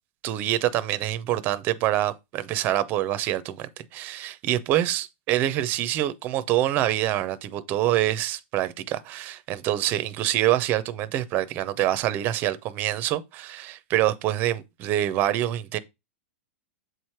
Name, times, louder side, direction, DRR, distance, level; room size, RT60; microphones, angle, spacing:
voice 1, 0.2-15.8, right 13 dB, 30° right, 0.6 m, -26 dB
7.9 x 3.2 x 4.4 m
supercardioid pair, 155°, 7 cm